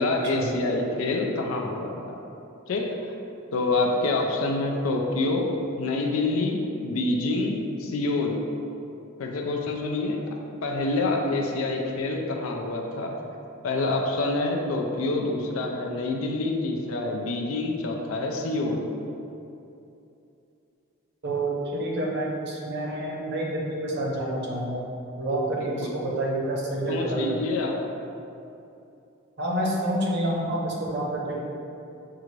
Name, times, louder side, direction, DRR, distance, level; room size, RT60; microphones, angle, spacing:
voice 1, 0.0-2.2 2.7-2.9 3.5-5.5 5.8-8.4 9.2-10.2 10.6-13.1 13.6-18.9 25.6-26.0 26.9-27.8, left 2 dB, 80° left, 1 dB, 0.5 m, -27 dB
voice 2, 21.2-24.9 25.2-27.4 29.4-31.4, right 1 dB, 55° right, -2 dB, 0.7 m, -28 dB
5.6 x 2.5 x 3.1 m, 2.7 s
head